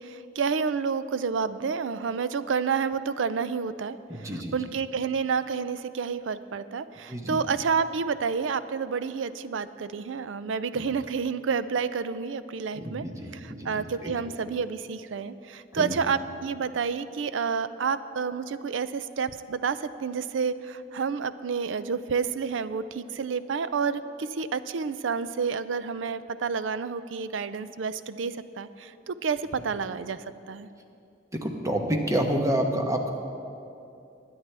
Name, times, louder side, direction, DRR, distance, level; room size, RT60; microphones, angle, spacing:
voice 1, 0.0-13.0 13.3-30.7, right 5 dB, 75° right, 14 dB, 0.4 m, -29 dB
voice 2, 4.1-4.5 7.1-7.4 12.7-14.1 15.7-15.9 31.3-33.1, right 1 dB, 15° right, 3 dB, 1.0 m, -29 dB
21.5 x 9.5 x 3.4 m, 2.7 s
head